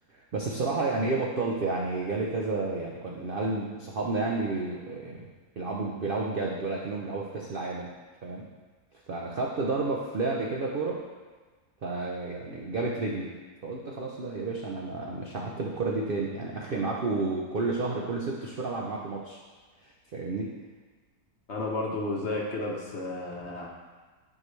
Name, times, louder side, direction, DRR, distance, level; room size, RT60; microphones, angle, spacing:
voice 1, 0.1-5.3 5.6-7.9 8.2-8.5 9.1-11.0 11.8-13.3 13.6-19.4 20.1-20.5, right 3 dB, 60° right, -2 dB, 0.6 m, -31 dB
voice 2, 21.5-23.7, left 2 dB, 50° left, -2 dB, 1.1 m, -32 dB
9.8 x 4.7 x 3.2 m, 1.4 s
omnidirectional pair, 1.7 m